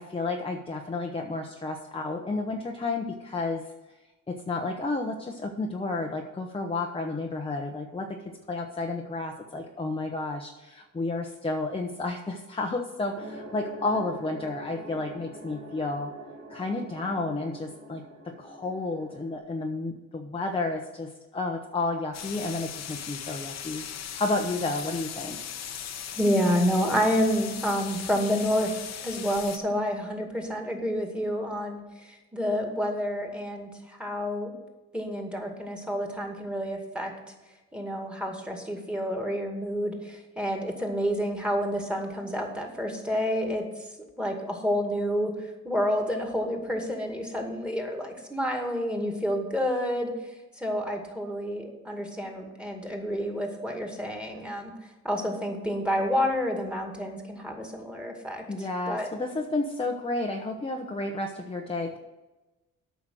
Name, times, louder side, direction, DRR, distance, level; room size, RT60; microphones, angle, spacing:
voice 1, 0.0-3.7 4.3-16.1 16.5-23.8 24.2-25.4 58.5-62.0, left 2 dB, 20° left, 2 dB, 0.9 m, -31 dB
sound 1, 13.1-19.4, right 1 dB, 40° right, 2.5 m, -44 dB
sound 2, 22.1-29.6, left 8 dB, 60° left, 1.0 m, -38 dB
voice 2, 26.2-34.5 34.9-37.1 37.7-45.3 45.6-50.1 50.6-54.7 55.0-59.1, equal, 5° right, 2 dB, 2.2 m, -29 dB
8.8 x 5.8 x 7.7 m, 1.1 s
cardioid pair, 90°, 30 cm